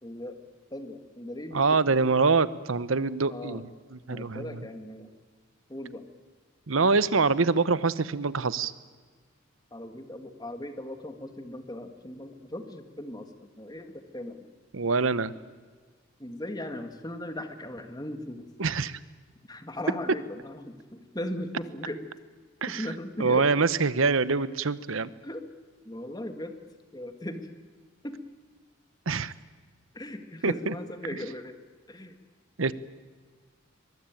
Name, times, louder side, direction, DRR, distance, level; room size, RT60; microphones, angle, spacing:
voice 1, 0.0-0.4 0.7-1.8 3.3-3.6 4.1-5.1 5.7-6.0 9.7-14.5 16.2-18.5 19.5-22.0 22.7-23.5 25.2-25.4 25.9-26.6 26.9-27.5 28.0-28.2 29.1-29.2 29.9-31.6 31.9-32.2, left 1 dB, 20° left, 7 dB, 2.0 m, -38 dB
voice 2, 1.5-4.7 6.7-8.7 14.7-15.3 18.6-19.0 22.6-22.9 23.2-25.1 29.1-29.3 30.4-30.7 32.6-32.7, right 4 dB, 75° right, 16 dB, 0.9 m, -25 dB
23.0 x 21.5 x 9.1 m, 1.5 s
head